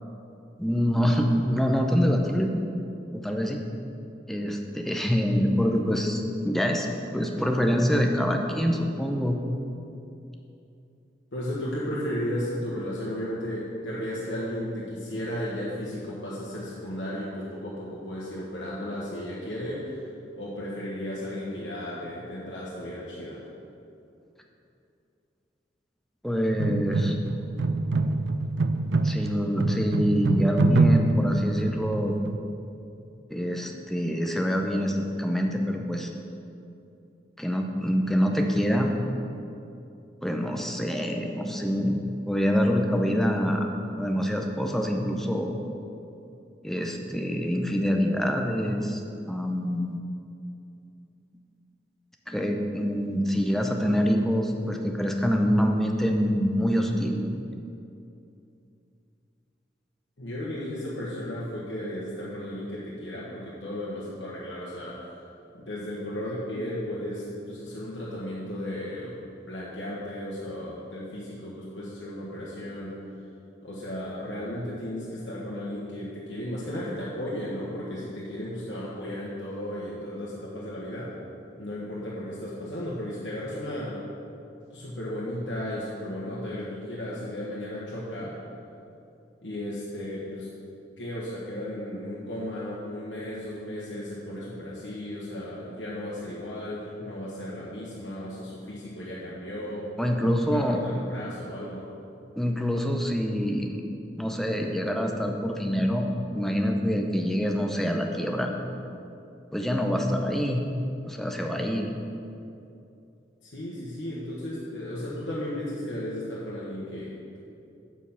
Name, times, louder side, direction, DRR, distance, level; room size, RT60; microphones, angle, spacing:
voice 1, 0.6-2.5 3.1-3.6 4.3-6.9 7.1-9.4 26.2-27.2 29.0-32.1 33.3-36.1 37.4-38.9 40.2-42.0 42.3-43.7 44.0-45.5 46.6-49.0 49.3-50.0 52.3-57.2 100.0-100.8 102.4-103.8 104.2-106.1 106.3-108.5 109.5-110.6 111.0-111.9, equal, ahead, 2 dB, 0.6 m, -25 dB
voice 2, 11.3-20.1 20.4-23.5 60.2-65.3 65.5-69.2 69.5-73.0 73.6-81.1 81.6-84.0 84.7-88.4 89.4-90.5 91.0-101.9 113.4-117.4, left 1 dB, 80° left, -7 dB, 1.3 m, -35 dB
sound 1, 26.6-32.4, right 3 dB, 80° right, 0.4 m, -25 dB
7.3 x 6.5 x 5.7 m, 2.7 s
head